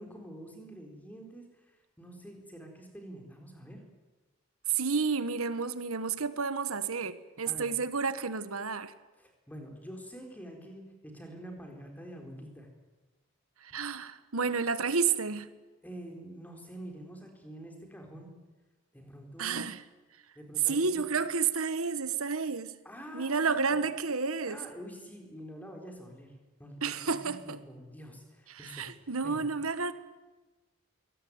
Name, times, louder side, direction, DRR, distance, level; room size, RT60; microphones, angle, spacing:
voice 1, 0.0-3.8 7.5-7.7 9.2-12.7 15.8-18.3 18.9-19.6 20.4-21.0 22.8-23.7 24.5-26.3 26.6-28.8 29.2-29.4, equal, 5° left, 4.1 m, -46 dB
voice 2, 4.7-8.9 13.6-15.5 19.4-19.8 20.7-22.7 23.1-24.6 26.8-27.6 28.5-29.9, right 5 dB, 80° right, 1.4 m, -31 dB
22.5 x 17.5 x 9.6 m
head